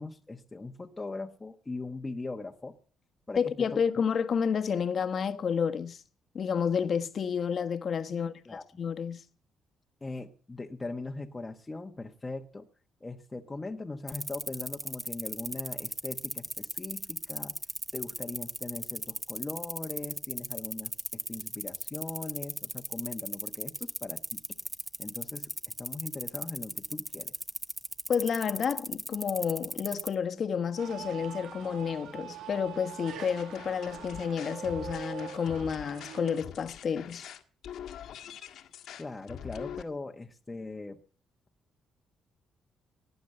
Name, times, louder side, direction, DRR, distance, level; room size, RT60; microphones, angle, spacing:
voice 1, 0.0-2.7 3.3-3.7 8.1-8.6 10.0-12.7 13.0-17.5 17.9-24.4 25.0-25.5 25.8-27.3 39.0-41.0, left 3 dB, 20° left, 1.2 m, -40 dB
voice 2, 3.3-6.0 6.3-8.3 8.8-9.2 28.1-37.3, left 7 dB, 55° left, 1.3 m, -30 dB
sound 1, 14.1-30.1, right 1 dB, 10° right, 0.8 m, -36 dB
sound 2, 30.8-36.4, right 9 dB, 80° right, 2.1 m, -43 dB
sound 3, 33.3-39.8, left 9 dB, 75° left, 1.7 m, -44 dB
18.0 x 9.5 x 6.6 m
cardioid pair, 90°, 0 cm